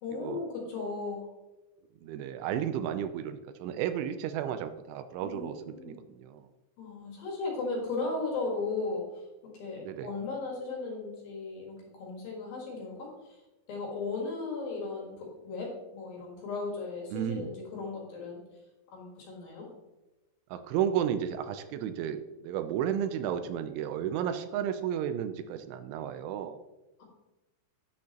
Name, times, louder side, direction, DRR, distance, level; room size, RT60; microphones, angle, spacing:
voice 1, 0.0-1.3 5.2-6.0 6.8-9.2 9.5-13.4 13.7-18.4 18.9-19.7, left 3 dB, 60° left, -2 dB, 2.9 m, -36 dB
voice 2, 2.0-6.4 9.8-10.1 17.1-17.5 20.5-26.6, right 9 dB, 85° right, 10 dB, 3.0 m, -33 dB
9.9 x 8.4 x 2.9 m, 1.0 s
omnidirectional pair, 5.5 m